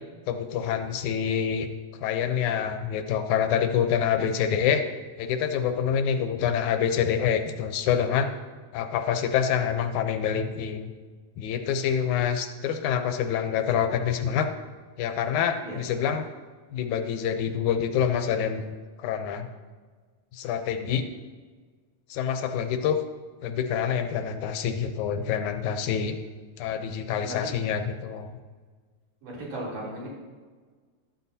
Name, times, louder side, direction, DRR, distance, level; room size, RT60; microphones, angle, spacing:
voice 1, 0.3-1.7 2.0-4.8 5.2-8.3 8.7-10.9 11.4-14.5 15.0-16.2 16.7-18.6 19.0-19.5 20.3-21.1 22.1-23.0 23.4-26.2 26.6-28.4, left 8 dB, 85° left, 7 dB, 2.2 m, -26 dB
voice 2, 29.2-30.1, right 1 dB, 80° right, -6 dB, 4.8 m, -36 dB
13.5 x 12.5 x 2.8 m, 1.5 s
omnidirectional pair, 3.3 m